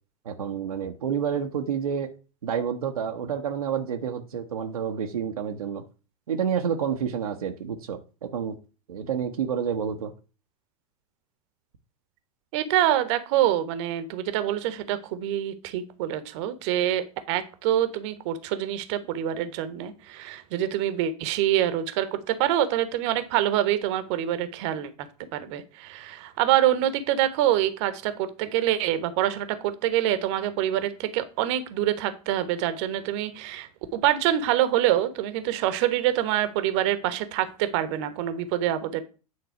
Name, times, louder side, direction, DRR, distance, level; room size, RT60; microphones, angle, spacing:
voice 1, 0.2-2.1 2.4-5.8 6.3-8.6 8.9-10.1, right 7 dB, 70° right, 1.0 m, -29 dB
voice 2, 12.5-24.9 25.3-39.0, right 12 dB, 50° right, 1.1 m, -26 dB
9.6 x 3.9 x 5.7 m
figure-of-eight pair, 85°, 19 cm